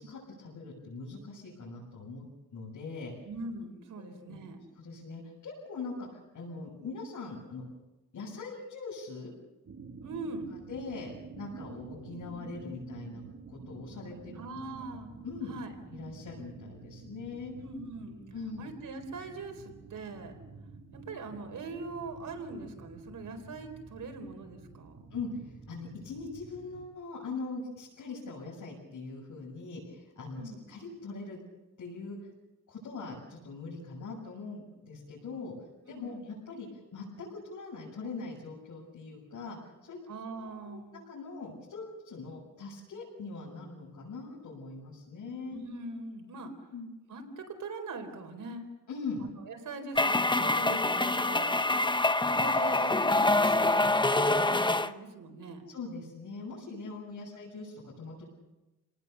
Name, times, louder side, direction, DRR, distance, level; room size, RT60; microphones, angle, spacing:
voice 1, 0.0-2.2 2.5-3.1 4.0-4.4 4.7-7.6 8.1-9.3 10.7-13.2 13.5-14.4 15.2-15.5 15.9-17.5 18.3-18.7 25.1-31.4 31.8-32.3 32.7-35.5 35.9-39.6 39.8-40.0 40.4-40.8 41.1-45.6 46.7-46.9 48.9-49.3 55.7-58.3, left 3 dB, 65° left, -5 dB, 7.3 m, -41 dB
voice 2, 3.2-4.6 10.0-10.5 14.3-15.1 15.5-15.7 17.6-18.2 18.6-20.4 20.9-25.0 30.3-30.7 35.9-36.3 40.1-41.0 45.5-46.5 47.1-48.7 49.2-51.6 52.3-55.7 57.1-57.2, right 3 dB, 75° right, 6 dB, 4.2 m, -41 dB
sound 1, 9.7-26.9, right 4 dB, 55° right, 2.8 m, -49 dB
sound 2, 50.0-54.9, left 2 dB, 15° left, 0.9 m, -25 dB
29.5 x 19.0 x 6.9 m, 1.1 s
cardioid pair, 85°, 31 cm